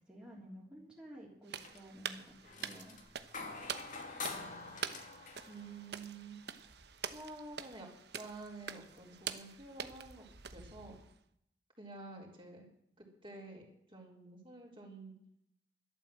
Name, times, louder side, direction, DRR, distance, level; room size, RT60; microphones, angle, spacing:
voice 1, 0.1-2.3 2.6-3.0, equal, 5° right, -5 dB, 3.4 m, -52 dB
sound 1, 1.5-2.0 2.3-6.5 8.0-8.1 8.6-9.3, left 4 dB, 45° left, 2.5 m, -47 dB
sound 2, 1.5-11.2, right 7 dB, 70° right, 1.1 m, -46 dB
voice 2, 5.5-6.4 7.0-7.9 8.1-11.0 11.8-12.7 13.0-15.1, right 3 dB, 30° right, -1 dB, 4.2 m, -50 dB
12.5 x 12.0 x 7.7 m, 0.73 s
head